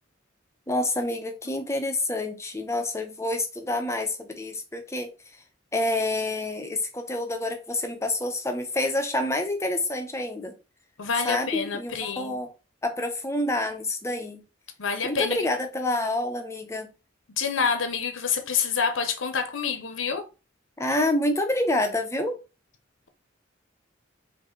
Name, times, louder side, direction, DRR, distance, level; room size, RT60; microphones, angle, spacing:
voice 1, 0.7-5.1 5.7-10.5 11.2-12.5 12.8-14.4 15.0-16.9 20.8-22.4, left 1 dB, 15° left, 0.7 m, -28 dB
voice 2, 11.0-12.3 14.8-15.4 17.4-20.3, left 6 dB, 80° left, 0.8 m, -27 dB
5.1 x 2.7 x 3.8 m
head